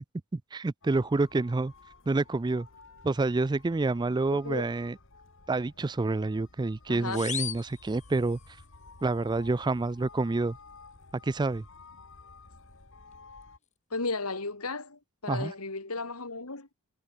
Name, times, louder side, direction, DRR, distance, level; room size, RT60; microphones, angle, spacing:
voice 1, 0.3-1.7 2.1-2.7 3.0-5.0 5.5-8.4 9.0-10.6 11.2-11.6 15.3-15.5, right 3 dB, 20° right, 0.4 m, -28 dB
sound 1, 0.8-13.6, left 4 dB, 60° left, 2.5 m, -53 dB
voice 2, 4.3-4.6 6.9-7.2 13.9-16.7, left 3 dB, 90° left, 3.5 m, -34 dB
sound 2, 7.1-8.7, left 9 dB, 35° left, 1.5 m, -38 dB
head